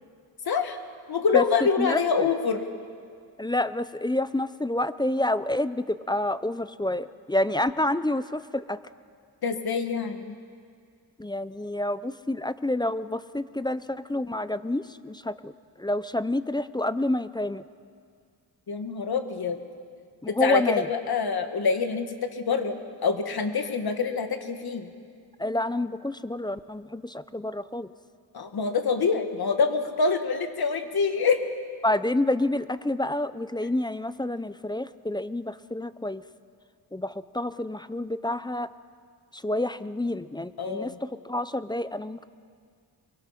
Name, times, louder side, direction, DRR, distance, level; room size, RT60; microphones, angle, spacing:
voice 1, 0.5-0.8 1.1-2.6 9.4-10.3 18.7-19.6 20.3-22.8 23.0-24.9 28.3-31.4 40.6-41.0, left 5 dB, 65° left, 6 dB, 1.9 m, -26 dB
voice 2, 1.8-2.3 3.4-8.8 11.2-15.5 15.8-17.6 20.2-20.9 25.4-27.9 31.8-36.2 36.9-38.7 39.3-42.3, left 1 dB, 10° left, 14 dB, 0.5 m, -28 dB
24.5 x 23.0 x 5.8 m, 2.1 s
wide cardioid pair, 115°, 41 cm